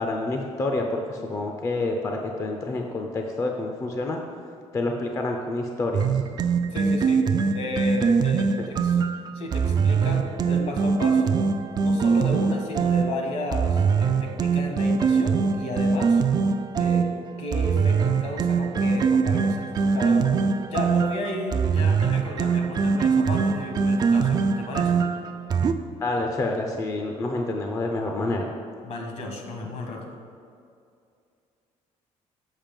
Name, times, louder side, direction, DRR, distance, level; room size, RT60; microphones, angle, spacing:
voice 1, 0.0-4.2 4.7-6.2 8.6-8.7 26.0-28.5, left 2 dB, 25° left, 2 dB, 0.5 m, -28 dB
sound 1, 5.9-25.7, right 5 dB, 30° right, 0.4 m, -22 dB
voice 2, 6.7-7.2 7.5-9.0 9.3-11.4 11.8-16.2 16.8-17.1 17.4-20.4 20.7-25.0 28.8-30.1, left 2 dB, 60° left, 2 dB, 1.4 m, -33 dB
7.4 x 5.2 x 5.2 m, 2.4 s
cardioid pair, 140°, 13 cm